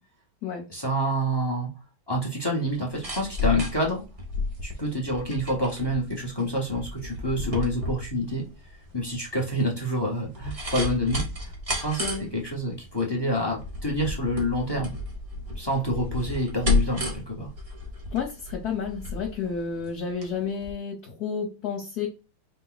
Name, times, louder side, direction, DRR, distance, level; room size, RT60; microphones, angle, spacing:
voice 1, 0.7-1.7 2.1-4.0 4.6-8.4 8.9-15.0 15.5-17.5, equal, 25° left, -1 dB, 0.5 m, -28 dB
sound 1, 2.7-20.3 20.6-20.7, left 2 dB, 55° right, 0.3 m, -32 dB
voice 2, 18.1-22.1, left 6 dB, 55° left, -1 dB, 1.3 m, -31 dB
5.3 x 2.2 x 3.9 m, 0.31 s
omnidirectional pair, 2.3 m